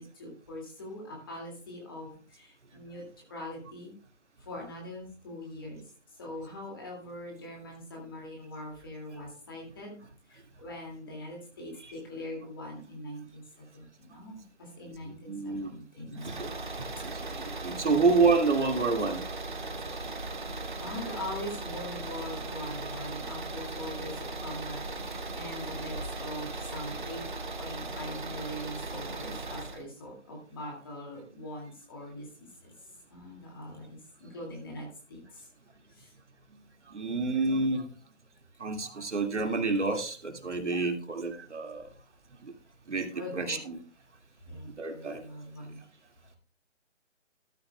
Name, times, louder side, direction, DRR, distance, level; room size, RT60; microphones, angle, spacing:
voice 1, 0.0-3.0 3.3-3.9 4.4-5.8 6.2-10.0 10.3-16.3 17.9-18.1 20.8-27.2 27.6-32.7 33.1-35.5 35.9-36.1 43.1-43.6 44.5-45.8, left 1 dB, 20° left, 0 dB, 2.2 m, -42 dB
voice 2, 15.1-15.7 16.3-16.5 17.0-19.2 36.9-37.8 38.6-41.8 42.9-43.1 43.4-43.8 44.8-45.2, right 4 dB, 65° right, 5 dB, 2.1 m, -28 dB
sound 1, 16.2-29.8, right 2 dB, 40° right, 1.1 m, -38 dB
13.5 x 13.0 x 2.2 m, 0.40 s
hypercardioid pair, 175°, 38 cm